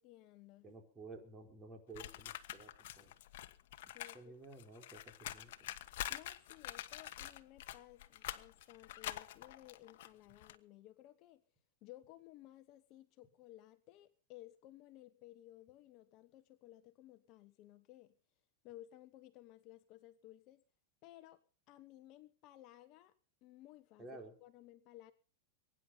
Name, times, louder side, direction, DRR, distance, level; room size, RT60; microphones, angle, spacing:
voice 1, 0.0-0.7 3.9-4.3 5.9-11.4 11.8-18.2 18.6-20.6 21.0-21.4 21.7-23.1 23.4-25.1, left 15 dB, 45° left, 1.2 m, -58 dB
voice 2, 0.6-3.1 4.1-5.7 24.0-24.3, right 3 dB, 20° right, 4.6 m, -53 dB
sound 1, 1.9-4.2 4.4-10.6, left 13 dB, 65° left, 1.2 m, -46 dB
22.5 x 10.0 x 5.6 m
supercardioid pair, 135°, 0 cm